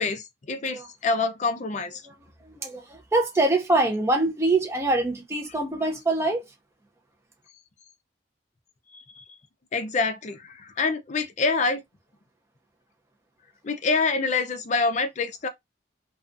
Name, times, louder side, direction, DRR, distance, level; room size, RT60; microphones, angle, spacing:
voice 1, 0.0-2.0 8.9-9.2 9.7-11.8 13.6-15.5, left 4 dB, 40° left, 0.4 m, -26 dB
voice 2, 2.4-6.4, right 2 dB, 15° right, 0.5 m, -24 dB
2.3 x 2.3 x 2.5 m
head